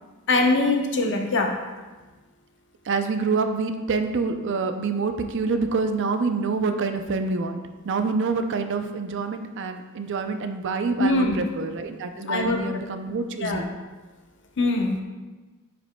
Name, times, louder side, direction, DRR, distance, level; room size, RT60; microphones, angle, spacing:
voice 1, 0.3-1.5 11.0-11.4 12.2-12.6 13.4-13.6 14.6-15.0, left 2 dB, 60° left, 2 dB, 0.8 m, -22 dB
voice 2, 2.9-7.6 7.8-13.7, right 4 dB, 60° right, 7 dB, 0.5 m, -26 dB
9.5 x 5.1 x 2.2 m, 1.2 s
head